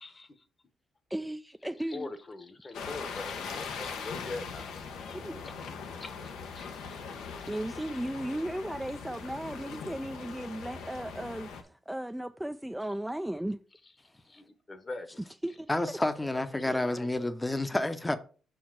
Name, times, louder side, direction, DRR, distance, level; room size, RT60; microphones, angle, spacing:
voice 1, 1.1-2.1 5.1-5.4 7.5-13.6 15.2-15.7 16.7-16.8, right 1 dB, 5° right, 0.3 m, -36 dB
voice 2, 1.9-4.7 6.0-6.1 6.5-6.7 14.3-15.1 16.6-17.1, left 3 dB, 30° left, 1.0 m, -42 dB
sound 1, 2.7-11.6, left 5 dB, 85° left, 1.0 m, -41 dB
voice 3, 15.7-18.2, left 1 dB, 15° left, 0.7 m, -29 dB
5.6 x 4.6 x 5.9 m
cardioid pair, 85°, 0 cm